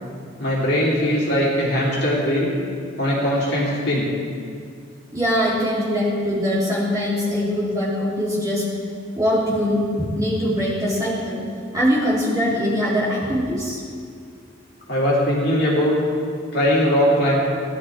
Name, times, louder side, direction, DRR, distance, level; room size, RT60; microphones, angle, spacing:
voice 1, 0.4-2.5 3.0-4.1 14.9-15.9 16.5-17.4, equal, 55° left, -5 dB, 2.9 m, -20 dB
voice 2, 5.1-8.7 9.1-11.4 11.7-13.8, equal, 20° right, -9 dB, 3.6 m, -22 dB
17.5 x 11.0 x 3.7 m, 2.2 s
head